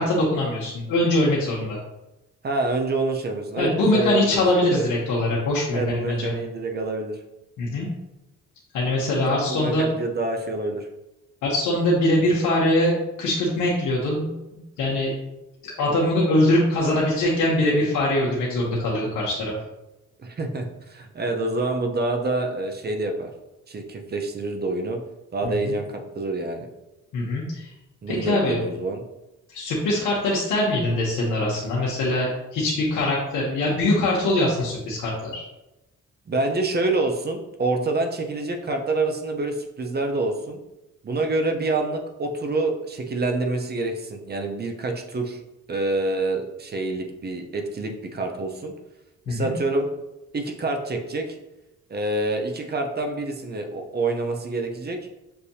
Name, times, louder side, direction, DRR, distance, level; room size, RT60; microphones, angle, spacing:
voice 1, 0.0-1.8 3.6-6.3 7.6-7.9 8.7-9.9 11.4-14.3 14.8-15.1 15.6-19.5 25.4-25.7 27.1-27.7 28.1-28.6 29.5-35.4 49.3-49.5, left 1 dB, 85° left, -5 dB, 1.0 m, -22 dB
voice 2, 2.4-4.9 5.7-7.2 9.2-10.9 20.2-23.3 23.7-25.0 25.3-26.7 28.0-29.0 36.3-40.6 41.0-45.4 45.7-48.7 49.3-49.9 50.3-51.4 51.9-55.0, right 2 dB, 35° right, 4 dB, 0.7 m, -27 dB
6.7 x 2.6 x 2.7 m, 0.96 s
cardioid pair, 90°, 30 cm